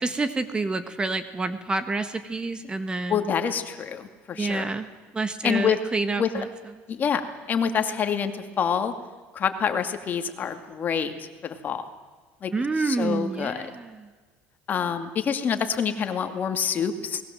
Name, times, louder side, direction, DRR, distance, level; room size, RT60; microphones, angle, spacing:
voice 1, 0.0-3.2 4.4-4.9 5.1-6.4 12.5-13.9, right 3 dB, 20° right, 10 dB, 1.5 m, -28 dB
voice 2, 3.1-4.7 5.4-5.8 6.2-6.4 6.9-8.9 9.3-11.8 12.4-12.5 12.8-13.7 14.7-17.2, left 7 dB, 35° left, 7 dB, 2.3 m, -27 dB
28.5 x 20.0 x 7.7 m, 1.4 s
cardioid pair, 120°, 5 cm